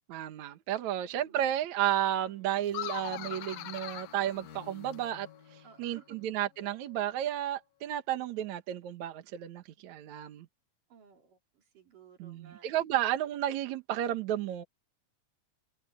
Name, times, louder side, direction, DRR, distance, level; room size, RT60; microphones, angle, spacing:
voice 1, 0.1-10.5 12.2-14.7, right 11 dB, 70° right, 2.5 m, -32 dB
voice 2, 1.0-1.5 5.6-6.1 10.9-12.7, right 7 dB, 90° right, 5.2 m, -57 dB
sound 1, 1.3-1.4 1.7-7.6 8.3-8.4, left 7 dB, 55° left, 3.1 m, -55 dB
sound 2, 2.7-5.2, left 14 dB, 85° left, 2.4 m, -41 dB
omnidirectional pair, 3.6 m